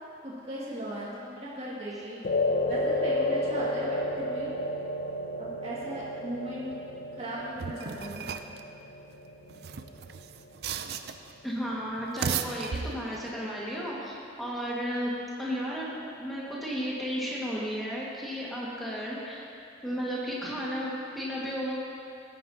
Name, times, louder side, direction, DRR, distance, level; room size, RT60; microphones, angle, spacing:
voice 1, 0.2-2.2 2.7-4.5 5.4-6.6 7.2-8.3, right 1 dB, 35° right, -8 dB, 2.1 m, -38 dB
sound 1, 2.2-10.7, left 1 dB, 55° left, 0.6 m, -32 dB
sound 2, 7.6-8.6 9.5-11.3 12.0-13.3, right 7 dB, 60° right, 0.4 m, -35 dB
voice 2, 11.4-15.1 15.4-19.5 19.8-21.7, equal, ahead, -7 dB, 1.8 m, -33 dB
16.5 x 9.3 x 2.9 m, 2.5 s
head